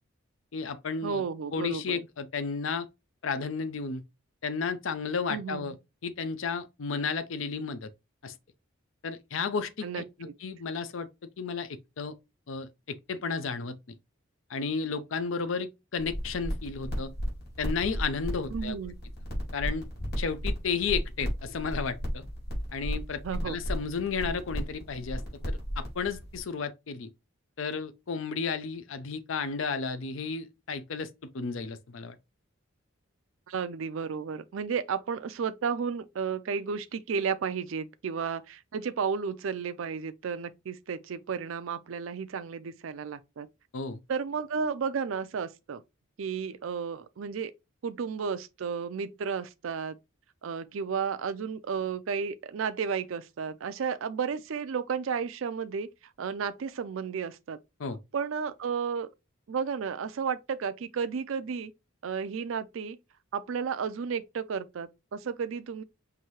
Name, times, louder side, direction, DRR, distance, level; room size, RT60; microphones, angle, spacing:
voice 1, 0.5-1.2 1.5-2.9 3.2-4.0 4.4-5.7 6.0-7.9 8.2-8.3 9.0-11.1 11.4-12.1 12.5-13.8 14.5-17.1 17.6-18.8 19.5-19.8 20.2-22.2 22.7-27.1 27.6-32.2 43.7-44.0 57.8-58.0, left 5 dB, 70° left, 0.5 m, -33 dB
voice 2, 1.0-2.0 5.3-5.8 9.8-10.3 18.5-18.9 23.2-23.6 33.5-43.5 44.1-45.8 46.2-47.5 47.8-50.0 50.4-55.9 56.2-57.6 58.1-59.1 59.5-61.7 62.0-63.0 63.3-65.8, right 6 dB, 70° right, 0.4 m, -33 dB
sound 1, 16.0-26.4, equal, 50° left, 2.3 m, -35 dB
5.8 x 2.7 x 3.0 m
head